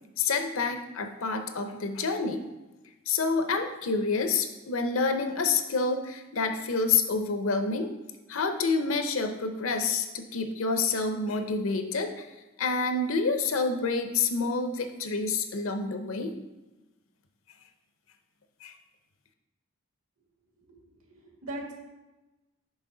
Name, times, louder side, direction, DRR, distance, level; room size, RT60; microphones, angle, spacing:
voice 1, 0.2-2.5 3.1-7.9 8.3-12.3 12.6-16.4 18.6-18.7, left 4 dB, 70° left, 7 dB, 0.7 m, -28 dB
voice 2, 20.8-21.7, right 1 dB, 80° right, -1 dB, 1.9 m, -40 dB
6.2 x 5.5 x 3.8 m, 1.1 s
head